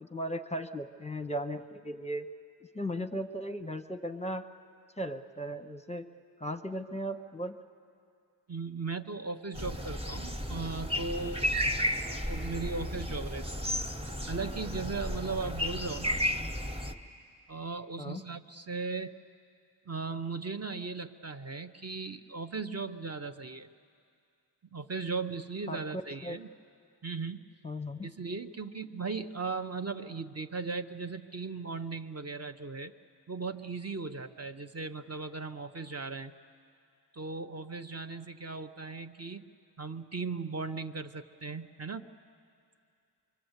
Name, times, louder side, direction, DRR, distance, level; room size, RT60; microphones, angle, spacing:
voice 1, 0.0-2.3 2.7-4.4 5.0-6.0 6.4-7.5 18.0-18.2 25.7-26.4 27.6-28.1, equal, 15° left, 8 dB, 0.7 m, -37 dB
voice 2, 8.5-11.6 12.1-13.8 14.3-16.2 17.5-19.2 19.9-23.7 24.7-26.5 27.0-27.5 28.0-32.9 33.3-36.3 37.1-39.5 39.8-42.0, right 4 dB, 35° right, 7 dB, 0.7 m, -37 dB
sound 1, 9.5-16.9, equal, 15° right, 1.1 m, -33 dB
25.0 x 24.5 x 8.0 m, 2.4 s
wide cardioid pair, 90°, 42 cm